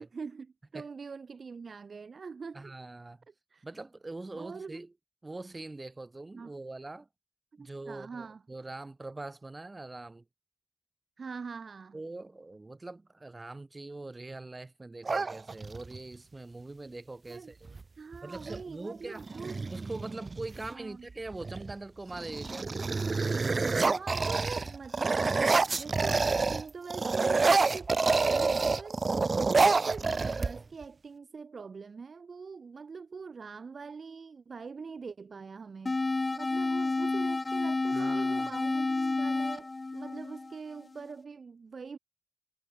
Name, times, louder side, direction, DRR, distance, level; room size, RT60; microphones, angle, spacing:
voice 1, 0.0-2.7 3.3-3.6 4.3-4.8 6.3-6.5 7.5-8.4 11.2-12.0 17.3-17.5 18.0-19.6 20.7-21.1 23.8-25.3 25.7-29.0 29.3-36.0 36.3-42.0, right 5 dB, 70° right, 2.5 m, -43 dB
voice 2, 2.5-3.2 3.6-4.9 5.2-7.1 7.6-10.2 11.9-17.8 18.2-19.2 19.7-22.8 29.3-29.8 37.9-38.5, right 2 dB, 30° right, 6.1 m, -43 dB
sound 1, 15.0-16.0 17.7-17.8 18.1-18.6 19.2-20.7 21.3-21.7 22.1-26.6 26.9-30.8, right 4 dB, 50° right, 0.4 m, -28 dB
sound 2, 35.9-40.9, left 3 dB, 35° left, 2.1 m, -30 dB
wide cardioid pair, 100°, 0 cm